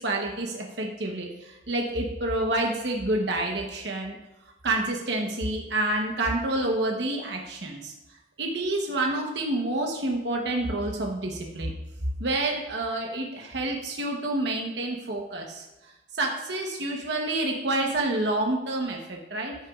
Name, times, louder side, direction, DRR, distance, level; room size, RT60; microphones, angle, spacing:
voice 1, 0.0-4.2 4.6-7.9 8.4-11.7 12.2-19.5, right 2 dB, 70° right, 0 dB, 1.0 m, -28 dB
14.0 x 6.1 x 2.4 m, 1.0 s
head